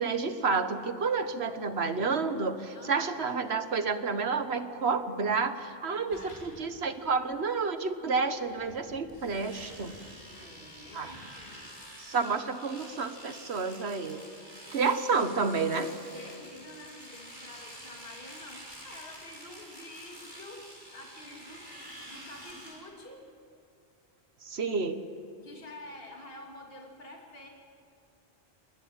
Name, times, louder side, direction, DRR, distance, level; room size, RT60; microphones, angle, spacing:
voice 1, 0.0-9.9 10.9-11.1 12.0-14.2 14.7-15.9 24.4-25.0, right 4 dB, 75° right, 9 dB, 1.6 m, -30 dB
voice 2, 2.7-3.2 6.0-6.4 10.2-11.7 16.1-21.7 22.1-23.3 25.4-27.5, left 1 dB, 60° left, 0 dB, 3.1 m, -48 dB
sound 1, 6.1-6.9 7.3-7.4 8.0-11.8, equal, 40° left, 5.3 m, -53 dB
Domestic sounds home sounds, 9.1-22.7, equal, 20° right, 6.7 m, -48 dB
29.5 x 21.0 x 8.9 m, 2.4 s
omnidirectional pair, 1.1 m